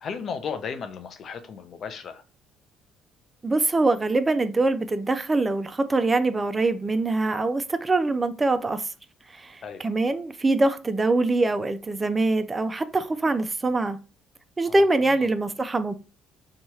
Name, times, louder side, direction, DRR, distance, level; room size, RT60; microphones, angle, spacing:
voice 1, 0.0-2.2 9.6-9.8 14.6-14.8, left 6 dB, 55° left, 0.4 m, -35 dB
voice 2, 3.4-8.8 9.3-14.0 14.6-15.9, right 2 dB, 20° right, 0.4 m, -23 dB
2.8 x 2.3 x 3.1 m
cardioid pair, 85°, 0 cm